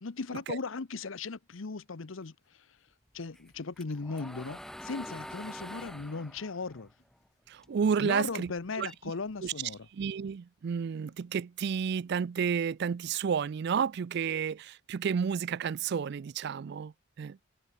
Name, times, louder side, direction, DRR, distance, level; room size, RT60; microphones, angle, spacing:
voice 1, 0.0-2.7 3.1-6.9 8.0-9.9, left 4 dB, 75° left, 0.8 m, -37 dB
sound 1, 2.2-6.1 6.6-8.5 8.8-10.5 10.7-11.5 11.8-12.3 12.6-12.9, left 1 dB, 55° left, 6.4 m, -74 dB
sound 2, 3.3-7.9 8.2-9.8, equal, ahead, 0.7 m, -46 dB
voice 2, 7.5-8.5 8.8-8.9 9.4-9.5 9.9-17.4, right 6 dB, 55° right, 0.4 m, -31 dB
head